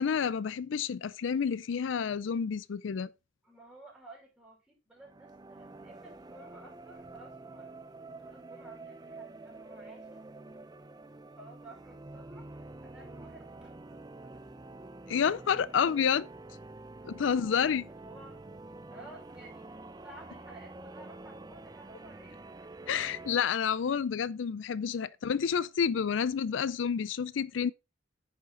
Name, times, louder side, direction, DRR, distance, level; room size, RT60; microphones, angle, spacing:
voice 1, 0.0-3.1 15.1-16.3 17.0-17.9 22.9-27.7, left 7 dB, 80° left, 0.4 m, -29 dB
voice 2, 3.4-7.7 8.2-10.2 11.0-15.3 17.0-18.4 18.9-22.6, right 2 dB, 5° right, 5.5 m, -54 dB
sound 1, 5.0-23.4, right 2 dB, 20° right, 0.5 m, -48 dB
9.7 x 6.7 x 3.8 m
head